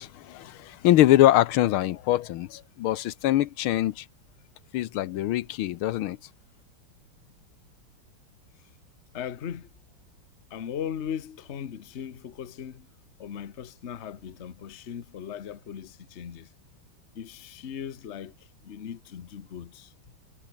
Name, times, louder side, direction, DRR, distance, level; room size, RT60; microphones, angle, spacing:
voice 1, 0.0-4.1 4.7-6.2, left 14 dB, 85° left, 1.6 m, -23 dB
voice 2, 9.1-9.7 10.5-12.9 13.2-16.5 17.1-19.9, left 8 dB, 40° left, 1.1 m, -38 dB
omnidirectional pair, 2.3 m